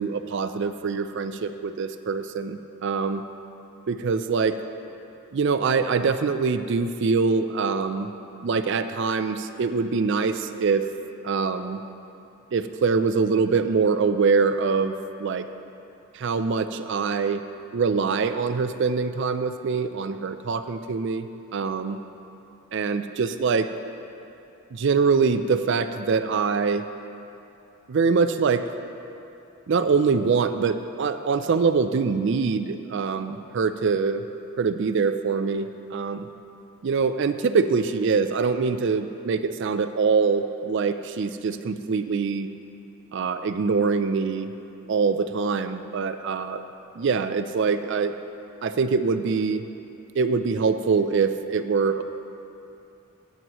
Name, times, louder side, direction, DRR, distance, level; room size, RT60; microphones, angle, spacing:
voice 1, 0.0-3.2 3.9-4.6 5.3-8.1 8.4-10.9 11.2-11.8 12.5-15.5 16.1-17.4 17.7-22.0 22.7-23.7 24.7-26.8 27.9-28.6 29.7-34.2 34.6-36.3 36.8-42.5 43.1-44.5 44.9-46.6 47.0-48.1 48.6-49.6 50.1-52.0, right 5 dB, 55° right, 10 dB, 0.4 m, -24 dB
17.0 x 9.3 x 3.0 m, 2.8 s
head